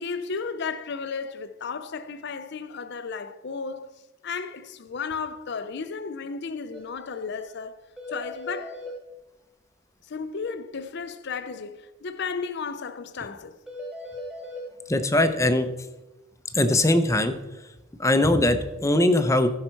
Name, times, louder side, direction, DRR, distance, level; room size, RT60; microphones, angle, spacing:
voice 1, 0.0-3.9 4.2-8.8 10.1-13.6, left 5 dB, 55° left, 0.5 m, -34 dB
sound 1, 6.7-6.8 7.1-7.2 7.5-7.6 8.0-8.9 13.7-14.6, left 1 dB, 5° right, 1.7 m, -38 dB
voice 2, 14.9-15.7 16.5-17.3 18.0-19.5, left 1 dB, 15° left, 0.6 m, -21 dB
15.0 x 5.6 x 4.5 m
head